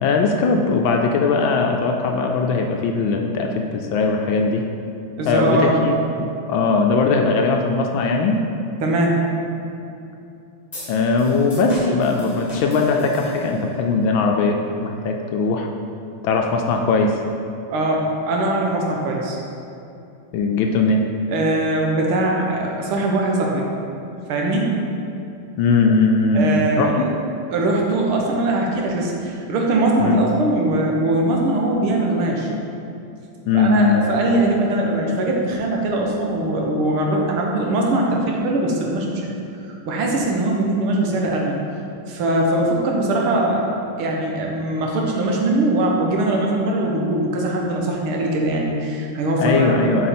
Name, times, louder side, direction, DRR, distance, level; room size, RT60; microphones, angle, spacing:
voice 1, 0.0-4.6 5.3-5.9 6.5-8.4 10.9-15.7 16.2-17.2 20.3-21.0 25.6-27.1 30.0-30.2 33.5-34.0 49.4-50.1, left 4 dB, 75° left, 2 dB, 1.2 m, -19 dB
voice 2, 5.2-5.8 8.8-9.2 17.7-19.4 21.3-23.7 24.3-24.7 26.3-26.9 27.5-32.5 33.5-39.3 39.6-41.6 42.1-43.7 44.0-50.0, right 2 dB, 80° right, -1 dB, 1.8 m, -21 dB
sound 1, 10.7-13.8, left 1 dB, 20° left, 1.2 m, -34 dB
7.7 x 5.1 x 4.2 m, 2.7 s
omnidirectional pair, 2.4 m